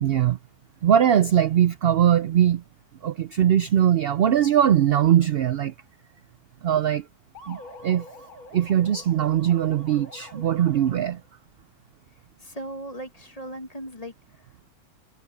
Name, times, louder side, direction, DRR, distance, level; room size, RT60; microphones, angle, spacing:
voice 1, 0.0-0.4 0.8-2.6 3.0-5.7 6.6-7.0 7.5-7.6 7.8-8.0 8.5-11.2, right 10 dB, 70° right, 0.5 m, -20 dB
sound 1, 7.4-11.2, left 1 dB, 80° left, 4.1 m, -45 dB
voice 2, 12.4-14.7, right 1 dB, 25° left, 1.7 m, -38 dB
omnidirectional pair, 1.6 m